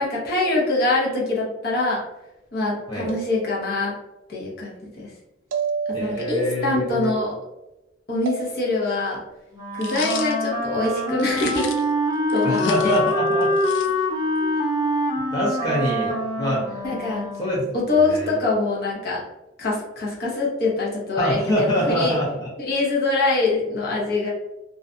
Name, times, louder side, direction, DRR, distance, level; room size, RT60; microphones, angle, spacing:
voice 1, 0.0-2.0 2.5-3.9 4.3-5.1 6.0-7.3 8.1-9.2 9.7-11.7 12.3-13.0 16.8-17.3 17.7-19.2 19.6-22.2 22.6-24.3, left 2 dB, 55° left, -4 dB, 0.8 m, -24 dB
sound 1, 3.1-3.9 5.5-6.5 8.3-8.9 9.9-10.2, right 6 dB, 85° right, 0.3 m, -30 dB
voice 2, 5.9-7.1 12.4-13.5 15.3-16.8 17.4-17.6 18.0-18.4 21.2-22.5, equal, 20° left, -6 dB, 0.5 m, -25 dB
Wind instrument woodwind instrument, 9.5-17.8, left 1 dB, 20° right, 0.7 m, -25 dB
sound 2, 9.8-10.3 11.2-11.9 12.3-14.3, left 6 dB, 70° left, 0.4 m, -35 dB
2.4 x 2.2 x 2.5 m, 0.98 s
head